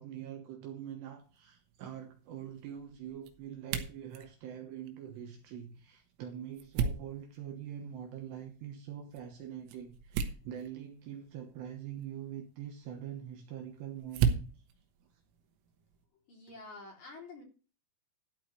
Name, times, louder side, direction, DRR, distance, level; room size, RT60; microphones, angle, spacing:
voice 1, 0.0-14.5, right 9 dB, 70° right, 2.9 m, -44 dB
sound 1, 1.2-16.1, right 7 dB, 85° right, 3.7 m, -40 dB
voice 2, 16.3-17.4, left 3 dB, 40° left, 4.1 m, -48 dB
13.0 x 4.5 x 7.6 m
omnidirectional pair, 5.7 m